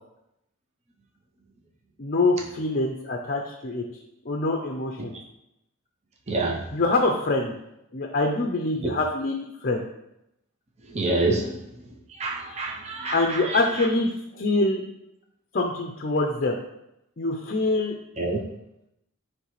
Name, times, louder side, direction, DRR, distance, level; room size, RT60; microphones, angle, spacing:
voice 1, 2.0-3.8 4.3-5.2 6.7-7.5 7.9-9.8 13.1-14.8 15.5-16.6 17.2-17.9, left 2 dB, 40° left, 2 dB, 0.5 m, -25 dB
voice 2, 6.3-6.6 8.8-8.9 10.9-11.6 12.2-13.6 18.2-18.4, right 2 dB, 30° right, 0 dB, 0.6 m, -26 dB
9.6 x 3.3 x 3.1 m, 0.84 s
head